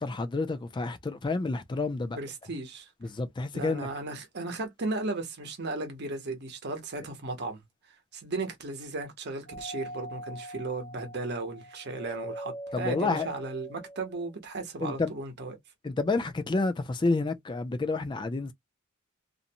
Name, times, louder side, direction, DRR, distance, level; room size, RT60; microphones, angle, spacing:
voice 1, 0.0-2.2 3.0-3.9 12.7-13.3 14.8-15.1 15.8-18.5, left 3 dB, 20° left, 0.4 m, -29 dB
voice 2, 2.1-2.9 3.5-7.6 8.1-15.6, right 2 dB, 55° right, 0.9 m, -35 dB
Doorbell, 9.5-14.3, right 1 dB, 45° left, 0.9 m, -42 dB
2.6 x 2.1 x 2.7 m
head